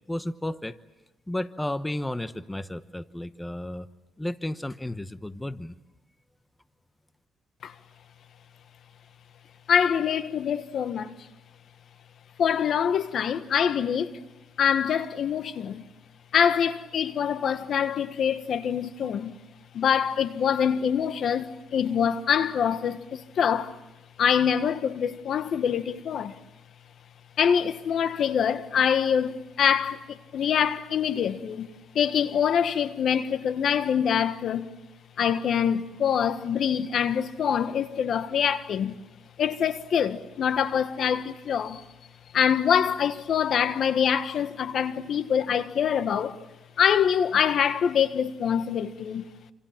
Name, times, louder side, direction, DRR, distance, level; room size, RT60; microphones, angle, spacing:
voice 1, 0.1-0.8 1.3-3.9 4.2-5.8, left 1 dB, 10° left, 1.0 m, -33 dB
voice 2, 9.7-11.1 12.4-14.2 14.6-15.8 16.3-19.3 19.7-23.8 24.2-26.4 27.4-31.7 31.9-34.7 35.2-39.0 39.4-41.8 42.3-46.4 46.8-49.3, left 8 dB, 65° left, 1.5 m, -25 dB
28.0 x 27.0 x 7.5 m
cardioid pair, 90°, 0 cm